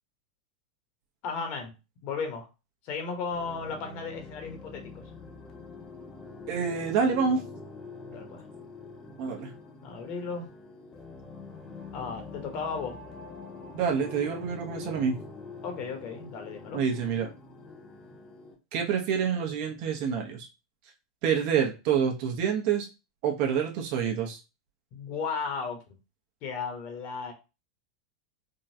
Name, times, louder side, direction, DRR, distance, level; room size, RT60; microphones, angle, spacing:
voice 1, 1.2-1.7 2.0-2.5 2.8-5.0 8.1-8.4 9.8-10.5 11.9-13.0 15.6-16.8 24.9-25.8 26.4-27.3, left 5 dB, 45° left, 4 dB, 1.0 m, -35 dB
sound 1, 3.3-18.5, left 4 dB, 20° left, 0.8 m, -45 dB
voice 2, 6.5-7.4 9.2-9.5 13.7-15.2 16.7-17.3 18.7-20.5 21.2-22.9 23.2-24.4, right 7 dB, 55° right, 2 dB, 0.8 m, -27 dB
3.7 x 2.2 x 2.7 m, 0.29 s
hypercardioid pair, 120°, 3 cm